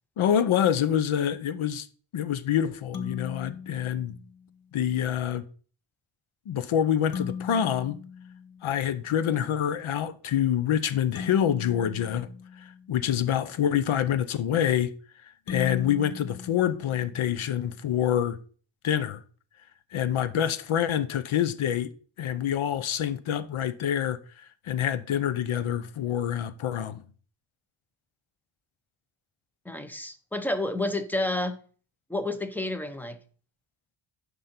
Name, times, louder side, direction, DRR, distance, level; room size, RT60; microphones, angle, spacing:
voice 1, 0.2-1.9 2.1-4.2 4.7-5.4 6.5-7.9 8.6-12.3 12.6-14.9 15.5-18.4 18.8-19.2 19.9-21.9 22.2-27.0, left 9 dB, 75° left, 0.8 m, -26 dB
sound 1, 2.9-4.6 7.1-9.1 11.2-13.3 15.5-17.5, left 6 dB, 45° left, 0.8 m, -39 dB
voice 2, 29.7-31.6 32.1-33.2, left 2 dB, 5° left, 0.6 m, -30 dB
10.0 x 5.4 x 4.4 m
wide cardioid pair, 140°, 50 cm